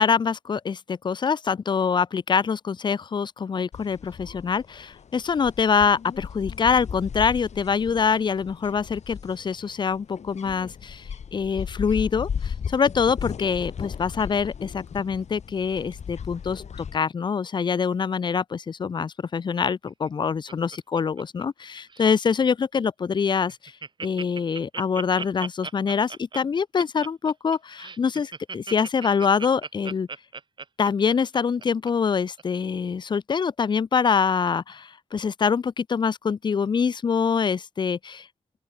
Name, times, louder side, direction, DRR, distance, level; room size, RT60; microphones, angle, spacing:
voice 1, 0.0-23.7 24.0-30.1 30.8-38.3, left 6 dB, 40° left, 0.4 m, -25 dB
sound 1, 3.7-17.0, left 7 dB, 85° left, 2.4 m, -36 dB
Laughter, 19.9-21.6 21.9-22.3 22.7-22.8 23.1-23.2 23.5-31.9 32.4-32.5, right 4 dB, 45° right, 2.5 m, -37 dB
open air
wide cardioid pair, 145°, 11 cm